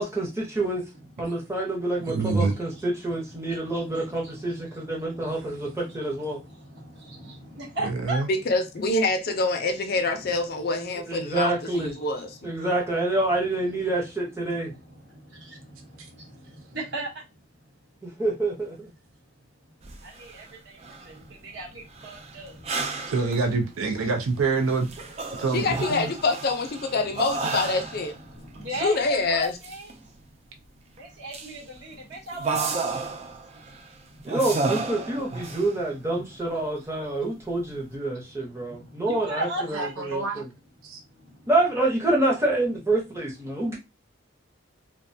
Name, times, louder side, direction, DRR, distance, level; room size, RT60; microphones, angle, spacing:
voice 1, 0.0-0.8 1.2-6.4 11.1-11.9 12.4-14.7 18.2-18.7 34.2-40.5 41.5-43.7, right 2 dB, 15° right, 0.7 m, -27 dB
voice 2, 0.9-1.4 1.7-1.8 2.1-8.3 11.4-12.4 14.5-17.2 20.0-23.1 25.3-25.4 28.2-29.9 30.9-34.4 35.4-36.3 36.8-37.8 38.1-40.2 41.2-41.5 43.5-43.7, right 1 dB, 55° right, 0.9 m, -39 dB
voice 3, 2.1-2.6 7.8-8.3 23.1-24.9 25.4-25.6 25.9-26.1 39.7-40.4 40.8-41.0, right 4 dB, 85° right, 0.5 m, -26 dB
voice 4, 8.3-12.4 25.5-28.2 28.8-29.5, left 3 dB, 50° left, 0.4 m, -26 dB
sound 1, 19.8-20.5 20.8-21.1 21.9-23.6 24.0-24.2 24.6-28.2 28.5-28.6 29.2-30.0 31.0-31.1 31.3-33.9 34.3-35.8, right 3 dB, 30° right, 0.3 m, -32 dB
2.4 x 2.1 x 2.6 m
head